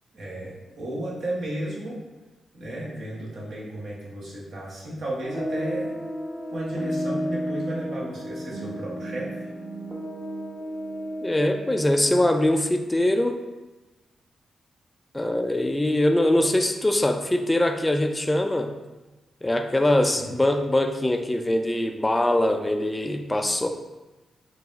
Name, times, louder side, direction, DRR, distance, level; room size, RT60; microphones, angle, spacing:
voice 1, 0.1-2.0 2.5-6.0 6.5-9.5 20.1-20.3, right 1 dB, 75° right, -4 dB, 1.2 m, -33 dB
sound 1, 5.2-12.4, equal, 35° right, 1.0 m, -32 dB
voice 2, 11.2-13.4 15.1-18.7 19.4-23.7, left 1 dB, 15° left, 5 dB, 0.4 m, -22 dB
4.8 x 2.0 x 3.5 m, 1.1 s
cardioid pair, 70°, 0 cm